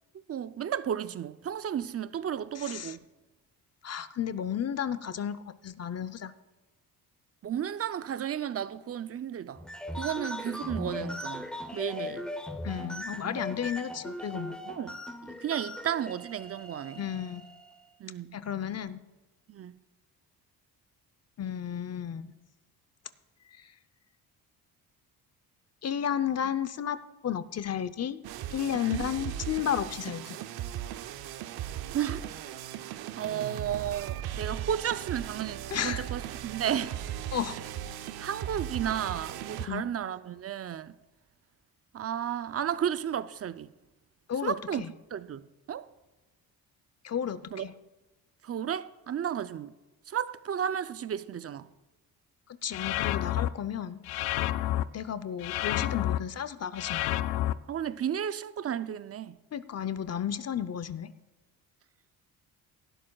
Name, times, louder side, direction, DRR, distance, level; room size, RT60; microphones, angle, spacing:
voice 1, 0.3-3.0 7.4-9.6 10.0-12.3 14.7-17.0 18.0-18.4 19.5-19.8 28.8-29.1 31.9-32.3 32.9-37.0 38.2-41.0 41.9-43.7 44.4-44.8 45.1-45.9 47.5-47.6 48.4-49.7 50.1-51.7 57.7-59.4, right 9 dB, 40° right, 0.5 m, -33 dB
voice 2, 2.6-2.9 3.8-6.3 12.6-14.7 17.0-17.4 18.3-19.0 21.4-22.3 25.8-27.0 27.2-28.2 28.5-30.4 35.7-36.1 37.3-37.5 39.6-39.8 44.3-44.9 47.0-47.7 52.6-54.0 54.9-57.1 59.5-61.1, left 9 dB, 40° left, 0.7 m, -33 dB
sound 1, 9.6-17.8, left 1 dB, ahead, 0.9 m, -39 dB
sound 2, 28.2-39.7, right 11 dB, 75° right, 0.7 m, -38 dB
sound 3, 52.7-53.5 54.1-54.8 55.4-56.2 56.8-57.5, left 14 dB, 75° left, 0.5 m, -29 dB
18.0 x 12.0 x 2.3 m
cardioid pair, 75°, 38 cm